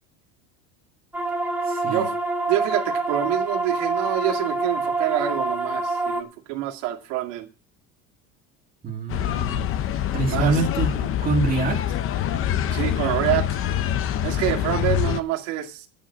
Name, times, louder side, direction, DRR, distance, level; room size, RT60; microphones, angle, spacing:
sound 1, 1.1-6.2, right 2 dB, 5° right, 1.5 m, -26 dB
voice 1, 1.6-2.1 8.8-9.7 10.1-11.8, right 3 dB, 25° right, 0 dB, 2.0 m, -25 dB
voice 2, 2.5-7.5 10.3-10.6 12.7-13.7 14.2-15.9, right 13 dB, 80° right, 2 dB, 2.2 m, -26 dB
sound 2, 9.1-15.2, left 10 dB, 35° left, 0.7 m, -25 dB
8.8 x 6.7 x 8.6 m, 0.37 s
cardioid pair, 145°, 37 cm